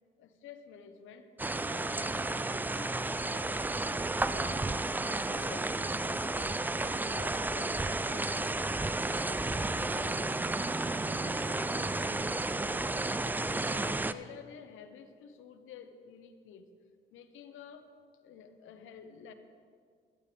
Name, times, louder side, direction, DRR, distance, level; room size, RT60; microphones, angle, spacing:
voice 1, 0.2-1.3 1.6-4.6 5.1-8.7 9.1-10.4 10.9-16.7 17.1-17.9 18.2-19.3, left 7 dB, 85° left, 8 dB, 1.0 m, -51 dB
sound 1, 1.4-14.1, right 2 dB, 10° right, 0.3 m, -32 dB
17.0 x 12.5 x 3.4 m, 2.1 s
cardioid pair, 90°, 20 cm